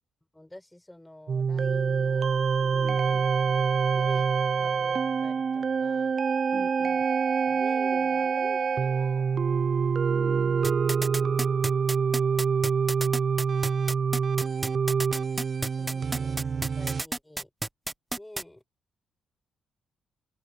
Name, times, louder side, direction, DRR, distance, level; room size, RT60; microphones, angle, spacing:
voice 1, 0.3-4.3 4.6-6.1 7.5-9.2 11.9-13.2 15.8-17.5 18.1-18.6, left 1 dB, 10° left, 5.8 m, -49 dB
sound 1, 1.3-17.0, right 6 dB, 45° right, 0.3 m, -26 dB
voice 2, 2.8-3.6 6.5-7.1 10.1-10.8 16.1-16.3, left 4 dB, 30° left, 1.1 m, -45 dB
sound 2, 10.6-18.4, right 2 dB, 15° right, 0.7 m, -31 dB
open air
cardioid pair, 90°, 0 cm